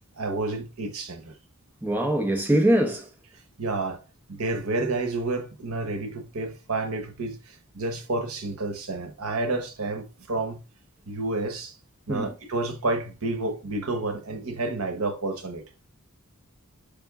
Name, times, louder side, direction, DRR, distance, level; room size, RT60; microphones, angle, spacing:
voice 1, 0.2-1.3 3.6-4.0 4.3-10.6 11.1-11.7 12.1-15.6, right 2 dB, 70° right, 1.1 m, -30 dB
voice 2, 1.8-3.1 12.1-12.3, right 1 dB, 10° right, 0.9 m, -22 dB
5.4 x 5.2 x 3.6 m
head